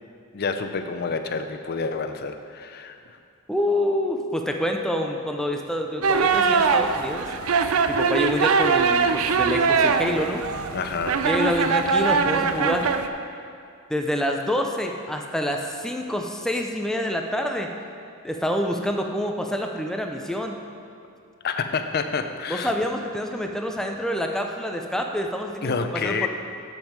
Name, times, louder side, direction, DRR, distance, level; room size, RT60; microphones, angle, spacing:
voice 1, 0.3-3.0 10.7-11.3 21.4-22.7 25.6-26.3, left 5 dB, 50° left, 7 dB, 0.5 m, -28 dB
voice 2, 3.5-7.3 7.9-10.4 11.2-12.9 13.9-17.7 18.2-20.6 22.5-26.3, equal, 5° left, 3 dB, 0.5 m, -27 dB
sound 1, 6.0-13.1, right 5 dB, 75° right, 0.5 m, -22 dB
13.0 x 5.3 x 4.6 m, 2.4 s
head